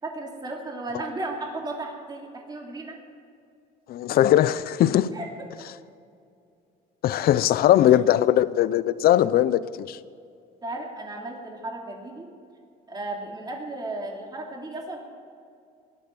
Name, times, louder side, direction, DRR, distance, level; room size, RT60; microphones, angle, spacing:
voice 1, 0.0-3.0 5.1-5.5 7.9-8.0 10.6-12.3 12.9-15.0, right 2 dB, 25° right, 2.8 m, -35 dB
voice 2, 3.9-5.2 7.0-10.0, left 12 dB, 65° left, 0.6 m, -20 dB
18.0 x 12.0 x 6.2 m
cardioid pair, 110°, 17 cm